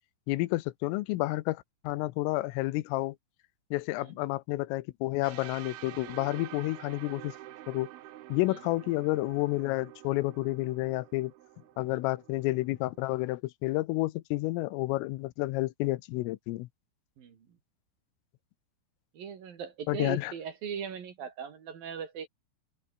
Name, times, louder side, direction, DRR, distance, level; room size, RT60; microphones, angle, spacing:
voice 1, 0.3-3.2 3.7-7.4 7.7-7.9 8.3-11.3 11.8-16.7 19.9-20.3, left 19 dB, 85° left, 3.4 m, -30 dB
sound 1, 5.2-13.1, right 14 dB, 70° right, 2.4 m, -48 dB
voice 2, 19.1-22.3, right 7 dB, 50° right, 3.8 m, -39 dB
omnidirectional pair, 5.9 m